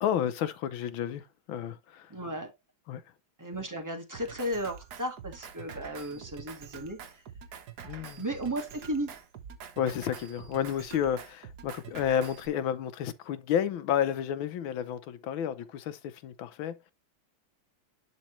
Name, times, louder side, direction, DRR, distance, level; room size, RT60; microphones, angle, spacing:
voice 1, 0.0-2.1 2.9-3.0 7.8-8.2 9.8-16.9, left 9 dB, 90° left, 1.6 m, -31 dB
voice 2, 2.1-2.5 3.4-7.0 8.2-9.1, right 1 dB, 10° right, 1.2 m, -34 dB
Drum kit, 4.1-12.5, right 7 dB, 60° right, 1.4 m, -46 dB
11.0 x 4.0 x 3.1 m
omnidirectional pair, 2.1 m